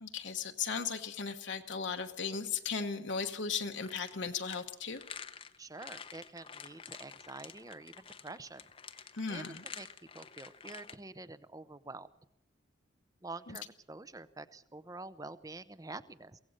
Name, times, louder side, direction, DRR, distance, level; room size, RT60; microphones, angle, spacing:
voice 1, 0.0-5.0 9.1-9.6, left 5 dB, 65° left, 4 dB, 1.1 m, -36 dB
sound 1, 3.2-11.0, left 6 dB, 25° left, 0.7 m, -49 dB
voice 2, 5.6-8.6 8.9-9.9 10.1-12.1 13.2-16.4, right 3 dB, 15° right, 15 dB, 0.7 m, -47 dB
23.0 x 17.0 x 6.6 m, 0.76 s
head